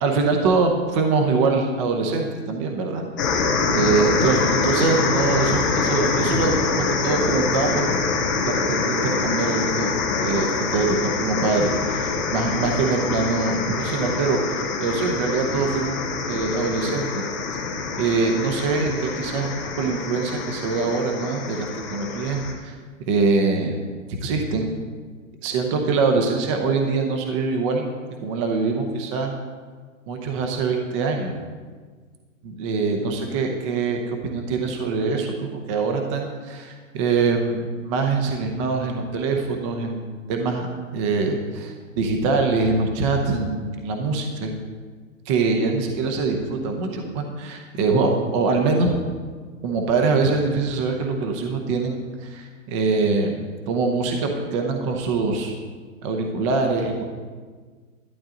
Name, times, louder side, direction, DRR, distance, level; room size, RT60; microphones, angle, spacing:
voice 1, 0.0-3.3 3.7-7.8 8.5-9.9 10.2-16.0 16.3-17.3 18.0-19.5 19.8-22.7 23.1-23.8 24.2-24.7 25.4-27.9 28.2-29.3 30.1-31.4 32.4-40.7 40.9-44.5 45.3-49.0 49.6-55.5 56.0-57.0, right 4 dB, 25° right, 3 dB, 0.8 m, -23 dB
sound 1, 3.2-22.5, left 4 dB, 15° left, 0.4 m, -25 dB
12.0 x 10.5 x 3.8 m, 1.5 s
hypercardioid pair, 160°, 40 cm